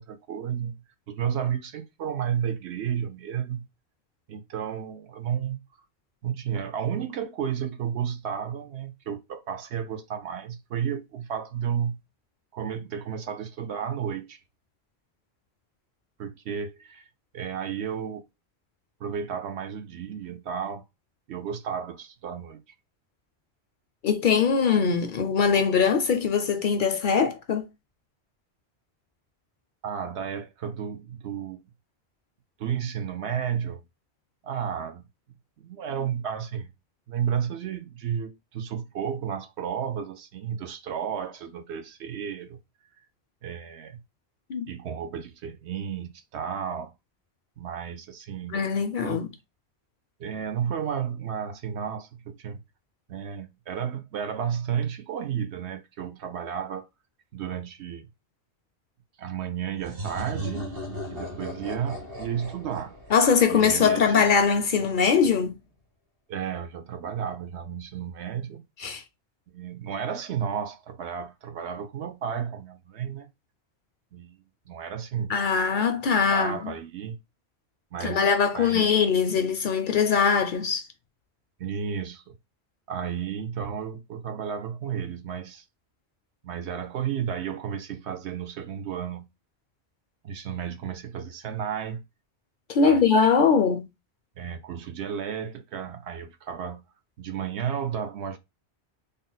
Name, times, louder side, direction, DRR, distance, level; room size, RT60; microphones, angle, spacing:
voice 1, 0.0-3.6 4.3-5.6 6.2-12.0 12.5-14.4 16.2-17.0 17.3-18.2 19.0-20.8 21.3-22.6 29.8-31.6 32.6-33.8 34.4-35.1 35.6-36.7 37.1-42.6 43.4-44.0 44.7-46.9 47.6-48.6 49.0-49.2 50.2-52.6 53.1-56.9 57.3-58.1 59.2-60.7 61.1-63.0 63.5-64.3 66.3-68.6 69.5-73.3 74.1-74.4 74.7-75.3 76.3-77.2 77.9-78.9 81.6-82.3 82.9-85.6 86.4-89.3 90.2-92.0 92.8-93.2 94.4-96.8 97.2-98.4, right 8 dB, 80° right, 0.9 m, -32 dB
voice 2, 24.0-27.7 44.5-44.7 48.5-49.3 63.1-65.6 68.8-69.0 75.3-76.7 78.0-80.9 92.7-93.9, left 6 dB, 60° left, 0.6 m, -22 dB
sound 1, 59.8-64.4, equal, 60° right, 1.3 m, -37 dB
3.6 x 2.1 x 3.9 m
omnidirectional pair, 1.1 m